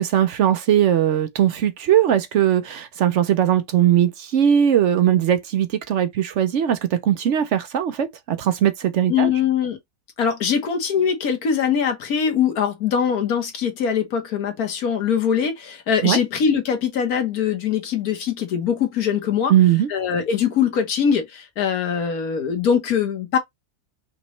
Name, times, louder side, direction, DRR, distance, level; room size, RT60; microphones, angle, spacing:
voice 1, 0.0-9.3 16.0-16.2 19.5-19.9, right 10 dB, 65° right, 0.9 m, -19 dB
voice 2, 9.1-9.8 10.2-19.5 19.9-23.4, left 7 dB, 85° left, 1.6 m, -22 dB
5.1 x 3.0 x 3.1 m
omnidirectional pair, 1.5 m